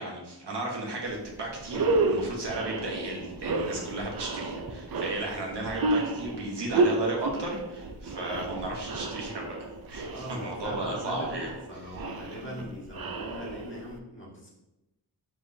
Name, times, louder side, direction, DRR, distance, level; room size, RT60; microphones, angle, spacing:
voice 1, 0.0-9.6 9.9-11.5, right 2 dB, 80° right, -2 dB, 1.2 m, -34 dB
sound 1, 1.1-1.3 1.6-14.0, right 3 dB, 60° right, 0.5 m, -31 dB
voice 2, 10.0-14.5, equal, 30° left, -4 dB, 1.4 m, -41 dB
5.1 x 3.4 x 2.7 m, 0.95 s
wide cardioid pair, 85°, 41 cm